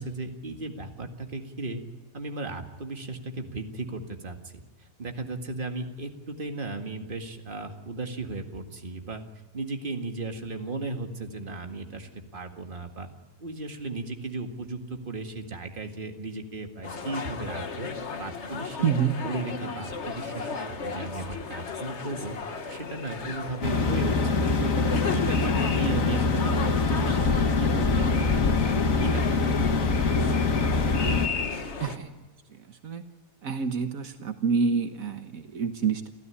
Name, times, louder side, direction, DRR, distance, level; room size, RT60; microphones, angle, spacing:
voice 1, 0.0-1.8 2.1-4.5 4.8-9.2 9.5-13.1 13.4-17.9 18.2-18.9 19.2-22.4 22.7-24.7 25.1-29.7 30.0-30.4, right 2 dB, 35° right, 5 dB, 2.1 m, -36 dB
sound 1, 16.8-32.0, left 4 dB, 55° left, 1.7 m, -33 dB
voice 2, 18.8-19.1 31.8-32.1 32.8-33.0 33.4-36.1, right 6 dB, 75° right, 7 dB, 1.7 m, -27 dB
sound 2, 23.6-31.3, left 4 dB, 70° left, 2.0 m, -24 dB
29.5 x 14.0 x 9.9 m, 1.3 s
omnidirectional pair, 1.5 m